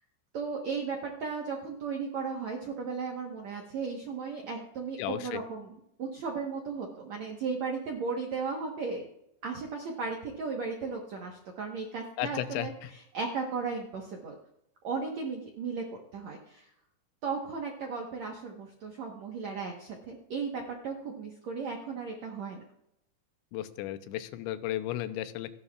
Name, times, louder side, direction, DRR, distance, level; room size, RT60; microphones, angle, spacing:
voice 1, 0.3-9.1 9.4-14.3 14.8-16.7 17.2-22.6, right 5 dB, 75° right, 0 dB, 1.6 m, -36 dB
voice 2, 5.0-5.4 12.2-12.9 23.5-25.5, left 13 dB, 90° left, 11 dB, 3.0 m, -34 dB
28.0 x 11.0 x 2.4 m, 0.80 s
omnidirectional pair, 5.1 m